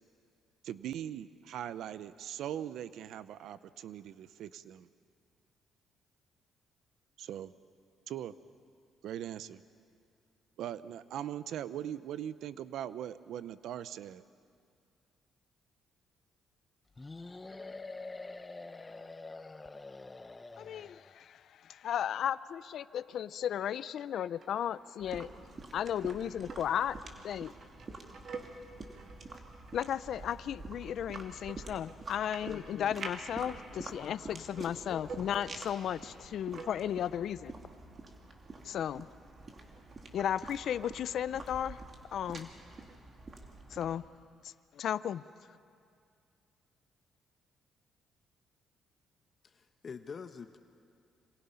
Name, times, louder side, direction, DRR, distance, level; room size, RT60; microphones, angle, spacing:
voice 1, 0.6-4.9 7.2-7.5 8.1-8.3 9.0-9.6 10.6-14.2, right 10 dB, 80° right, 15 dB, 0.7 m, -40 dB
sound 1, 17.0-21.1, left 3 dB, 20° left, 0.8 m, -46 dB
voice 2, 20.6-25.3 25.7-27.0 27.2-27.5 29.7-37.5 38.6-39.1 40.1-41.8 42.1-42.5 43.7-44.0 44.4-45.2, left 9 dB, 70° left, 16 dB, 0.5 m, -35 dB
sound 2, 24.4-43.0, right 4 dB, 55° right, 2.6 m, -52 dB
sound 3, 25.0-44.0, right 3 dB, 40° right, 2.9 m, -48 dB
voice 3, 49.4-50.6, left 5 dB, 45° left, 8 dB, 1.0 m, -45 dB
27.0 x 26.5 x 5.7 m, 2.3 s
cardioid pair, 90°, 0 cm